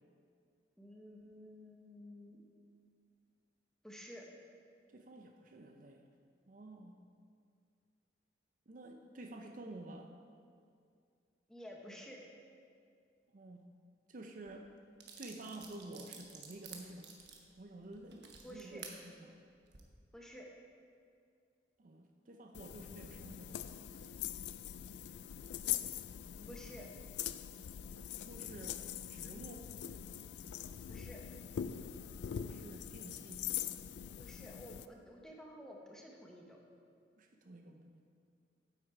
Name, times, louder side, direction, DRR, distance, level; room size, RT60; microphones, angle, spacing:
voice 1, 0.8-2.4 3.8-4.3 11.5-12.2 18.4-18.8 20.1-20.5 26.3-26.9 30.9-31.2 34.2-36.6, equal, 5° left, -1 dB, 1.0 m, -52 dB
voice 2, 4.9-6.1 6.5-7.0 8.7-10.1 13.3-13.7 14.1-14.7 15.2-17.1 17.5-19.3 21.8-23.8 28.2-28.8 29.1-29.7 32.3-33.5 37.2-38.0, right 2 dB, 45° right, 3 dB, 0.6 m, -50 dB
sound 1, 14.5-14.6 15.0-19.0 19.5-19.8, right 6 dB, 70° right, 1.1 m, -51 dB
sound 2, 22.5-34.9, left 10 dB, 70° left, 0.3 m, -43 dB
8.8 x 8.1 x 4.8 m, 2.3 s
head